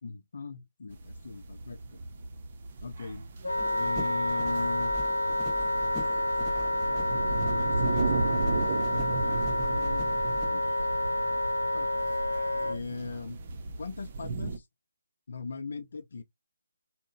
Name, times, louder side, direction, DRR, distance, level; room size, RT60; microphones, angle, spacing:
voice 1, 0.0-2.0 2.8-3.2 3.8-4.9 7.4-10.1 10.5-11.0 11.7-12.0 12.7-13.4 13.8-14.7 15.3-16.2, left 4 dB, 55° left, 0.6 m, -40 dB
sound 1, 0.9-14.6, right 3 dB, 40° right, 0.7 m, -35 dB
Wind instrument woodwind instrument, 3.4-12.8, left 1 dB, 80° left, 0.8 m, -29 dB
sound 2, 3.6-10.5, equal, 5° right, 1.3 m, -43 dB
3.7 x 2.1 x 2.6 m
figure-of-eight pair, 150°, 0 cm